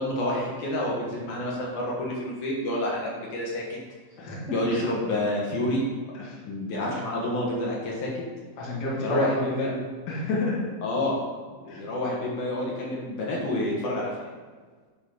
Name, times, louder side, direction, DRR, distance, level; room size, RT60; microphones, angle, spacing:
voice 1, 0.0-3.8 4.5-5.8 6.4-8.1 9.0-9.7 10.8-11.2 11.6-14.3, left 1 dB, 65° left, -3 dB, 2.8 m, -28 dB
voice 2, 4.2-4.7 6.2-6.4 8.6-9.7 10.1-10.6 11.7-11.8, left 1 dB, 35° left, -5 dB, 1.9 m, -29 dB
10.0 x 4.1 x 5.2 m, 1.5 s
omnidirectional pair, 3.9 m